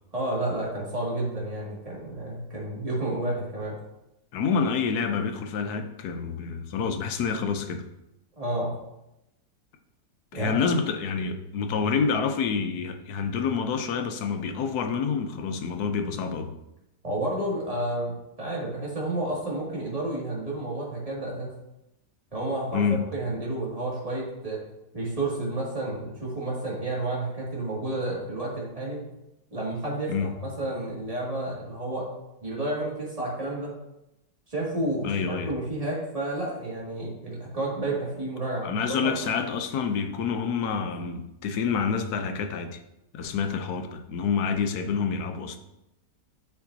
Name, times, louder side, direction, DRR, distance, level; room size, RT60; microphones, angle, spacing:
voice 1, 0.1-3.8 8.4-8.7 10.3-10.6 17.0-21.5 22.3-22.8 23.1-24.6 24.9-29.0 29.5-30.1 30.4-32.1 32.4-33.7 34.5-39.1, right 1 dB, 20° right, -5 dB, 2.2 m, -31 dB
voice 2, 4.3-7.9 10.3-16.5 22.7-23.0 30.1-30.3 35.0-35.5 38.6-42.8 43.1-45.6, left 5 dB, 70° left, 7 dB, 1.1 m, -28 dB
8.2 x 6.9 x 2.7 m, 0.89 s
omnidirectional pair, 1.9 m